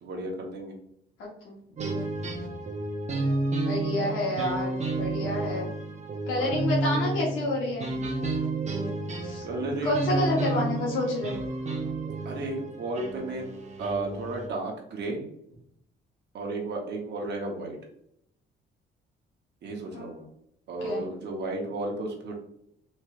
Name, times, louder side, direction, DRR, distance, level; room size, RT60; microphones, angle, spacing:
voice 1, 0.0-0.7 6.3-6.7 9.4-10.3 12.2-13.5 13.8-15.2 16.3-17.8 19.6-20.3 20.7-22.3, right 2 dB, 60° right, 0 dB, 0.9 m, -33 dB
voice 2, 1.2-1.6 3.7-5.7 6.3-7.9 9.2-9.4 9.8-11.4 19.9-20.1 20.8-21.0, left 1 dB, 80° left, -4 dB, 1.0 m, -29 dB
sound 1, 1.8-14.5, right 2 dB, 35° right, 0.7 m, -31 dB
3.1 x 2.9 x 2.4 m, 0.71 s
cardioid pair, 90°, 20 cm